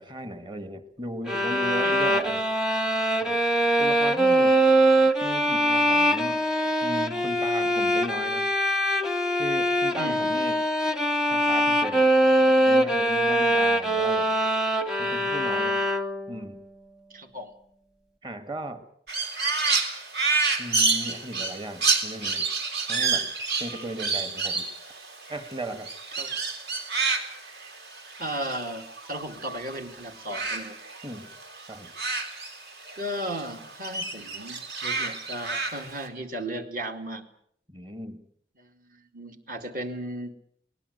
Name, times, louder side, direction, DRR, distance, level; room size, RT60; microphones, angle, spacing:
voice 1, 0.0-2.5 3.2-3.4 3.8-4.6 5.2-6.4 6.8-8.5 9.4-10.6 11.3-12.1 12.7-14.4 15.0-15.9 16.3-16.6 18.2-18.8 20.6-22.5 22.8-23.3 23.6-24.7 25.3-25.9 31.0-31.3 31.7-31.9 37.7-38.2, right 1 dB, 25° right, 10 dB, 1.6 m, -36 dB
sound 1, 1.3-16.4, right 1 dB, 5° right, 0.9 m, -23 dB
voice 2, 1.8-2.1 10.0-10.3 13.4-13.6 17.1-17.5 26.2-26.4 28.2-30.8 33.0-37.3 38.6-40.3, right 1 dB, 50° right, 5 dB, 2.5 m, -36 dB
Crow, 19.1-29.8 30.0-33.0 33.4-36.1, right 4 dB, 70° right, 3.5 m, -29 dB
23.5 x 19.0 x 8.0 m, 0.65 s
head